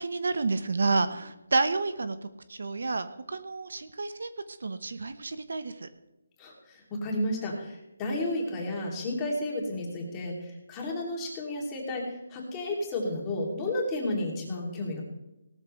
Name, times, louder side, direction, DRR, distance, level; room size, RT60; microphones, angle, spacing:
voice 1, 0.0-2.2 2.5-4.3 4.6-5.9, right 3 dB, 65° right, 11 dB, 1.1 m, -29 dB
voice 2, 6.4-15.0, left 1 dB, 15° left, -2 dB, 2.9 m, -32 dB
18.0 x 13.0 x 3.3 m, 0.96 s
hypercardioid pair, 170°, 0 cm